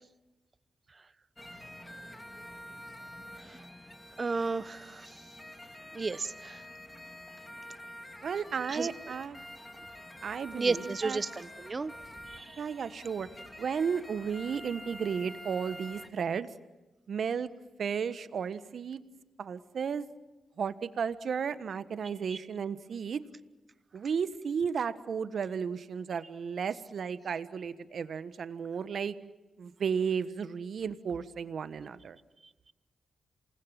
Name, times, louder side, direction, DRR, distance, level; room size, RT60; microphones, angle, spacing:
sound 1, 1.4-16.1, left 1 dB, 15° left, 2.9 m, -47 dB
voice 1, 4.2-5.1 5.9-6.6 8.7-8.9 10.5-11.9 12.3-12.6 22.3-22.4, right 4 dB, 40° right, 15 dB, 1.1 m, -33 dB
voice 2, 8.2-9.4 10.2-11.2 12.6-13.3 13.6-16.5 17.1-17.5 17.8-19.0 19.4-20.1 20.6-23.2 23.9-29.2 29.6-32.2, right 6 dB, 65° right, 12 dB, 1.3 m, -34 dB
28.0 x 20.0 x 7.6 m, 1.1 s
supercardioid pair, 50°, 0 cm